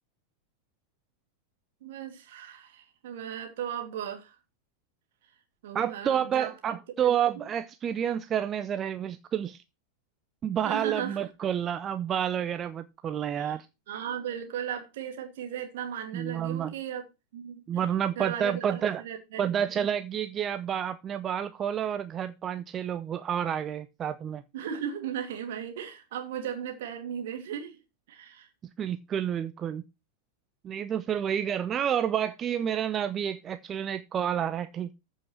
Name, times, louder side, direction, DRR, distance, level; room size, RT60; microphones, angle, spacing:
voice 1, 1.8-4.4 5.6-7.5 10.6-11.2 13.4-13.6 13.9-17.0 17.3-17.8 18.2-19.4 24.5-27.8 28.1-28.5, right 9 dB, 55° right, 2.7 m, -36 dB
voice 2, 5.7-9.6 10.4-13.7 16.1-16.7 17.7-19.0 19.4-24.4 28.8-29.8 30.6-34.9, right 9 dB, 25° right, 0.6 m, -29 dB
14.0 x 5.7 x 4.4 m
figure-of-eight pair, 90°, 0 cm